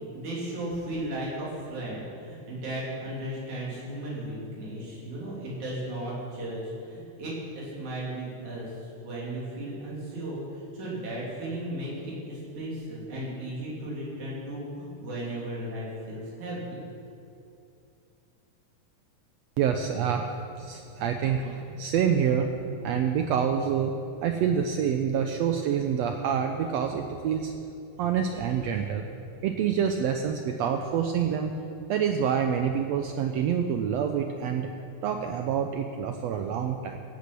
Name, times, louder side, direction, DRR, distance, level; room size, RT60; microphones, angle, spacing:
voice 1, 0.1-16.8, right 1 dB, 65° right, -5 dB, 4.4 m, -35 dB
voice 2, 19.6-22.5 22.8-23.9 24.2-27.5 28.0-29.0 29.4-31.6 31.9-34.7 35.0-37.0, right 8 dB, 90° right, 5 dB, 1.5 m, -27 dB
16.5 x 8.3 x 6.1 m, 2.6 s
omnidirectional pair, 3.7 m